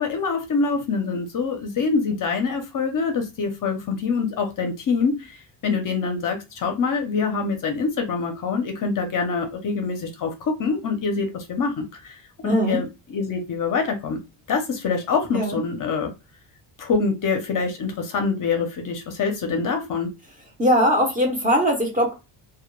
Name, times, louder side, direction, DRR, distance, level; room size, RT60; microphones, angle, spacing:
voice 1, 0.0-5.4 5.6-14.2 14.5-16.1 16.8-20.1, left 4 dB, 45° left, 5 dB, 0.5 m, -25 dB
voice 2, 12.4-12.8 15.3-15.6 20.6-22.1, equal, 20° right, 1 dB, 0.5 m, -20 dB
2.2 x 2.0 x 2.9 m, 0.26 s
cardioid pair, 150°, 48 cm